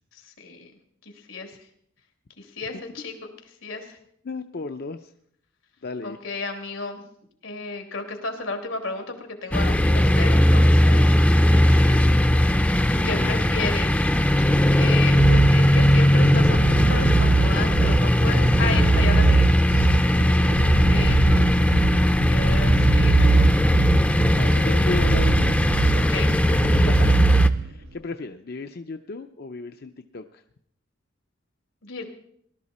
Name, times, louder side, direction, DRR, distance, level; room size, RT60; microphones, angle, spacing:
voice 1, 0.4-0.7 1.3-1.5 2.4-3.3 3.6-3.8 6.0-7.0 7.4-11.1 11.4-12.1 12.7-13.9 14.7-19.9 20.9-21.5 22.3-23.7 25.9-26.3 31.8-32.1, left 4 dB, 90° left, 4 dB, 2.7 m, -33 dB
voice 2, 4.2-5.0 5.8-6.2 11.6-12.5 13.0-13.6 20.1-20.8 24.3-25.6 26.5-26.6 26.8-27.2 27.9-30.2, left 3 dB, 50° left, 7 dB, 0.5 m, -34 dB
sound 1, 9.5-27.5, left 1 dB, 5° left, 0.5 m, -19 dB
sound 2, 15.2-27.7, right 4 dB, 60° right, 0.4 m, -23 dB
18.5 x 12.0 x 4.2 m, 0.67 s
head